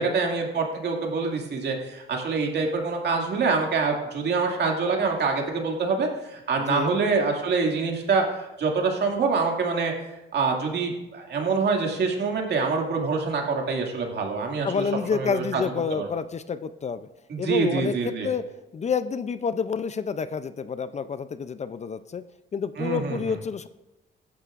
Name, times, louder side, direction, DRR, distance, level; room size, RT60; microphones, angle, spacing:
voice 1, 0.0-9.9 10.3-14.8 15.1-15.6 15.9-16.1 17.3-18.3 22.8-23.2, right 4 dB, 60° right, 1 dB, 2.3 m, -25 dB
voice 2, 6.6-7.0 14.6-17.1 17.4-18.4 18.7-22.2 22.5-23.7, left 6 dB, 35° left, 13 dB, 0.5 m, -29 dB
15.5 x 10.5 x 2.5 m, 0.98 s
cardioid pair, 90°, 20 cm